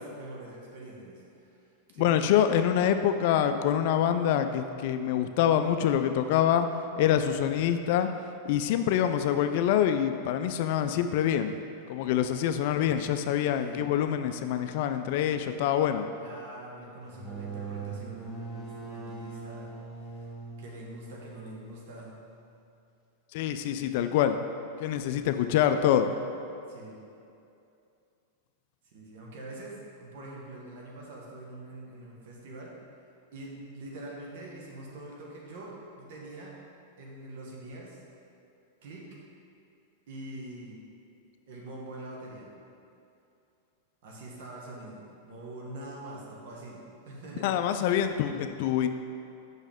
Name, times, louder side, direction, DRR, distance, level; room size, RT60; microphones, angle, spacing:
voice 1, 0.0-1.6 1.9-2.1 13.5-13.8 16.2-19.7 20.0-20.3 20.6-22.1 26.7-26.9 28.8-32.7 33.3-36.6 37.0-38.0 38.8-39.1 40.1-40.8 41.5-42.5 44.0-48.0, right 1 dB, 65° right, -2 dB, 1.4 m, -44 dB
voice 2, 2.0-6.7 7.0-8.1 8.5-11.6 11.9-16.1 23.3-24.4 24.8-26.1 47.4-48.9, left 10 dB, 60° left, 9 dB, 0.3 m, -25 dB
sound 1, 17.0-22.6, right 4 dB, 5° right, 1.5 m, -41 dB
6.1 x 5.4 x 3.6 m, 2.6 s
hypercardioid pair, 130°, 0 cm